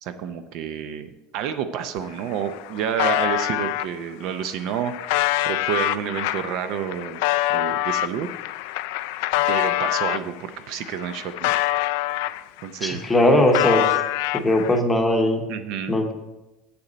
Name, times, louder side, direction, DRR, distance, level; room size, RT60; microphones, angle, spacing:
voice 1, 0.0-7.2 7.5-8.3 9.5-11.5 12.6-13.0 15.5-16.0, right 8 dB, 50° right, 9 dB, 0.5 m, -29 dB
sound 1, 2.0-2.1 2.3-3.9 4.5-10.3 10.7-12.7 13.0-14.8, left 16 dB, 70° left, 0.3 m, -25 dB
voice 2, 12.8-13.8 14.3-15.4 15.9-16.1, left 1 dB, 5° left, 3 dB, 0.9 m, -19 dB
8.0 x 6.9 x 5.1 m, 1.0 s
cardioid pair, 175°, 0 cm